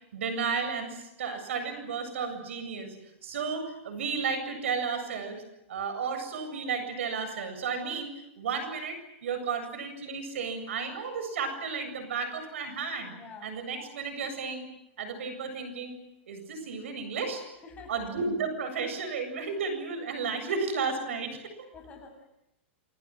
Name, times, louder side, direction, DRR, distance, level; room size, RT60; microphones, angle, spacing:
voice 1, 0.1-3.0 3.2-5.4 5.7-8.1 8.4-13.1 13.4-14.7 15.0-16.0 16.3-17.4 17.9-21.7, right 5 dB, 80° right, 9 dB, 7.8 m, -33 dB
voice 2, 13.0-13.5 17.6-18.1 21.7-22.2, left 4 dB, 20° left, 5 dB, 7.5 m, -47 dB
28.0 x 26.5 x 6.4 m, 0.85 s
hypercardioid pair, 135°, 7 cm